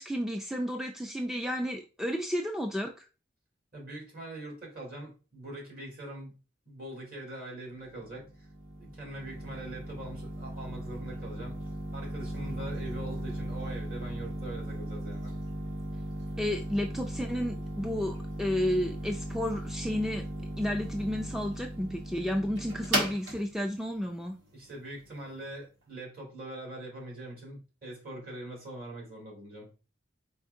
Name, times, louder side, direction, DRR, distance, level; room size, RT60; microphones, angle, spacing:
voice 1, 0.0-3.1 16.4-20.2 20.6-24.4, equal, ahead, 4 dB, 0.3 m, -32 dB
voice 2, 3.7-6.4 6.7-8.5 8.8-11.6 11.9-15.3 24.5-29.7, right 1 dB, 50° right, -2 dB, 2.3 m, -43 dB
sound 1, 7.8-25.5, right 1 dB, 85° right, 1.5 m, -37 dB
4.5 x 4.3 x 2.6 m, 0.33 s
head